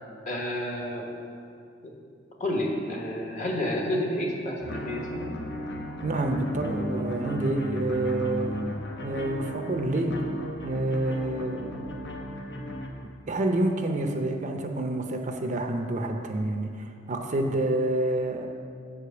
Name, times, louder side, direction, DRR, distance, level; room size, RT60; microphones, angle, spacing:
voice 1, 0.3-1.1 2.4-5.2 5.8-5.9, left 1 dB, 40° left, 0 dB, 1.3 m, -30 dB
sound 1, 4.6-12.9, equal, 65° left, 0.9 m, -35 dB
voice 2, 6.0-8.7 9.0-10.2 10.6-11.9 13.3-18.5, right 1 dB, 40° right, 4 dB, 0.6 m, -28 dB
7.4 x 4.9 x 6.8 m, 2.3 s
head